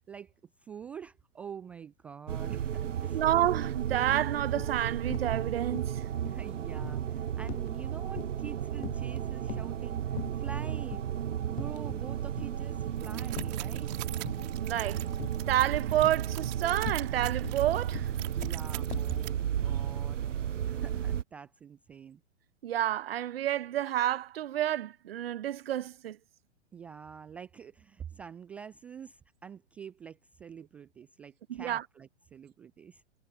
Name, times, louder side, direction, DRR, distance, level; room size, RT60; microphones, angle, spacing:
voice 1, 0.6-3.2 6.3-11.0 11.4-14.1 18.3-22.2 26.7-33.0, right 7 dB, 5° right, 0.3 m, -46 dB
sound 1, 2.3-21.2, right 9 dB, 75° right, 0.6 m, -33 dB
sound 2, 2.4-2.6 2.9-3.6 4.0-4.8 5.1-5.4 5.7-8.5 8.8-9.8 10.2-10.6 10.9-11.1 11.5-12.1 12.4-13.7 14.3-14.7 15.2-15.7 16.0-19.2, left 22 dB, 20° left, 0.7 m, -43 dB
voice 2, 3.1-6.0 14.6-15.0 15.5-18.1 22.6-26.2 31.5-31.8, right 12 dB, 50° right, 1.0 m, -29 dB
sound 3, 13.0-19.3, right 26 dB, 35° right, 1.9 m, -44 dB
figure-of-eight pair, 110°, 37 cm